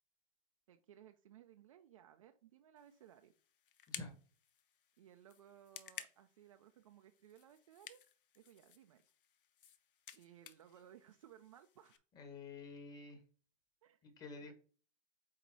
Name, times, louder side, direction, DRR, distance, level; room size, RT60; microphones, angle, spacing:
voice 1, 0.7-3.3 5.0-8.0 8.3-9.0 10.1-12.0 13.8-14.0 14.4-14.5, right 10 dB, 35° right, 6 dB, 0.5 m, -61 dB
sound 1, 2.8-12.0, left 9 dB, 65° left, 0.9 m, -56 dB
voice 2, 12.1-13.2 14.0-14.5, left 3 dB, 15° left, 5 dB, 1.1 m, -50 dB
8.3 x 2.9 x 4.5 m, 0.39 s
hypercardioid pair, 155°, 29 cm